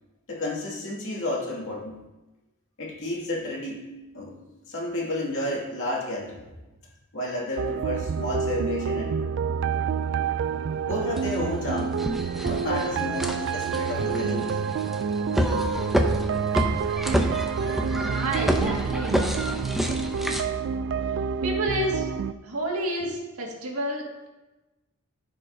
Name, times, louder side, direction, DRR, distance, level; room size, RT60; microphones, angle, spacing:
voice 1, 0.3-2.0 2.8-3.8 4.1-4.4 4.7-6.5 7.1-9.4 10.8-12.0 12.4-14.6 18.5-19.0, left 1 dB, 65° left, -4 dB, 2.3 m, -31 dB
sound 1, 7.6-22.3, right 6 dB, 55° right, 0.3 m, -28 dB
sound 2, 11.2-11.3 11.8-20.4, equal, ahead, 0.6 m, -28 dB
voice 2, 18.0-19.2 21.4-22.1 22.4-24.3, right 1 dB, 70° right, -2 dB, 2.0 m, -29 dB
14.5 x 5.3 x 2.7 m, 1.1 s
head